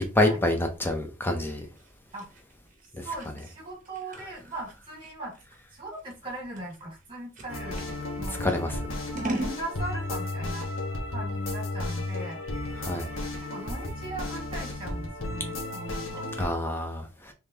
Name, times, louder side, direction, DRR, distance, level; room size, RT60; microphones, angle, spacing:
voice 1, 0.0-1.7 2.9-3.0 8.4-8.7 12.8-13.1 16.4-17.3, left 1 dB, 10° left, 0.6 m, -27 dB
Scissors, 1.8-7.9 8.5-9.6, right 1 dB, 40° right, 0.9 m, -38 dB
voice 2, 3.0-5.4 5.7-7.9 8.2-8.4 9.2-10.7 11.1-12.4 13.4-16.3, right 2 dB, 25° right, 1.8 m, -39 dB
sound 1, 7.5-16.5, left 2 dB, 80° left, 1.2 m, -34 dB
3.6 x 3.3 x 2.8 m
head